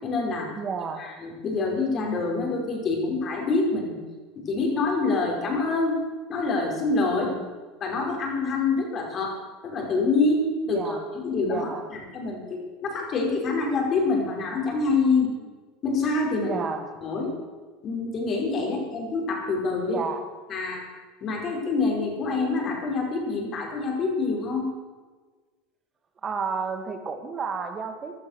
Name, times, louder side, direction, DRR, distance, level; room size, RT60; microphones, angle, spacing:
voice 1, 0.0-0.5 1.0-4.0 4.4-6.0 6.3-7.3 7.8-9.4 9.6-15.3 15.8-16.5 17.0-17.3 17.8-20.0 20.5-20.8 21.2-24.7, left 3 dB, 40° left, 1 dB, 5.2 m, -26 dB
voice 2, 0.6-1.0 7.0-7.5 10.7-11.0 11.4-11.8 16.4-16.9 19.9-20.3 26.2-28.2, right 5 dB, 30° right, 7 dB, 2.3 m, -32 dB
16.5 x 12.0 x 6.7 m, 1.4 s
hypercardioid pair, 95°, 0 cm